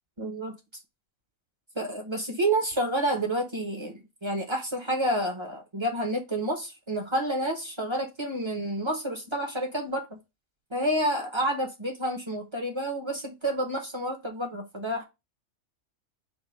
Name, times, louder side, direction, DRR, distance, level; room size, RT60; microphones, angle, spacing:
voice 1, 0.2-0.5 1.8-10.2 10.7-15.0, right 1 dB, 30° right, 0.6 m, -29 dB
4.5 x 2.2 x 4.2 m
omnidirectional pair, 1.4 m